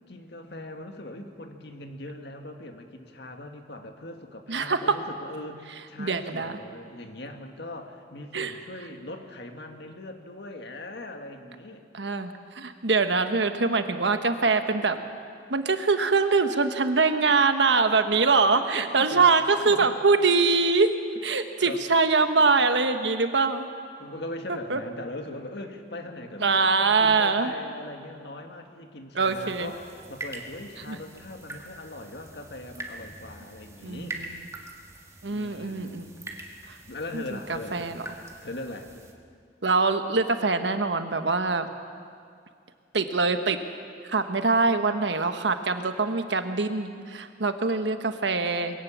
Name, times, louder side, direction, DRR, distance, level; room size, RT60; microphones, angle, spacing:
voice 1, 0.1-11.8 18.5-19.3 19.6-19.9 21.2-21.3 21.6-21.8 22.3-22.4 24.0-34.2 35.3-36.3 36.9-38.0 38.4-38.9, left 1 dB, 65° left, 5 dB, 1.9 m, -40 dB
voice 2, 4.5-5.0 6.0-6.6 8.3-8.5 11.9-15.0 15.5-21.0 21.2-23.7 24.7-24.8 26.4-27.5 29.1-29.7 30.9-31.0 33.8-34.3 35.2-36.1 36.7-36.8 37.1-37.2 37.5-38.0 39.6-41.7 42.9-43.6 44.1-48.8, right 4 dB, 85° right, 8 dB, 1.3 m, -23 dB
sound 1, 29.2-39.1, right 2 dB, 15° right, 1.9 m, -44 dB
22.0 x 17.5 x 7.4 m, 2.2 s
head